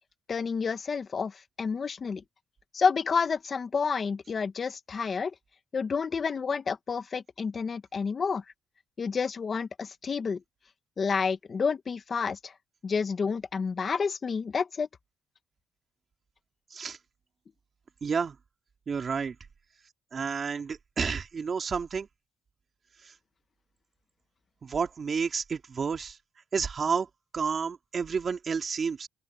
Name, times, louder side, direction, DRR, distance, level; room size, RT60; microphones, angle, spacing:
voice 1, 0.3-2.2 2.7-5.3 5.7-8.4 9.0-10.4 11.0-12.5 12.8-14.9, left 5 dB, 40° left, 1.7 m, -29 dB
voice 2, 18.0-18.4 18.9-19.4 20.1-22.1 23.0-23.1 24.6-26.2 26.5-27.1 27.3-29.1, right 5 dB, 45° right, 2.9 m, -30 dB
open air
cardioid pair, 90°, 0 cm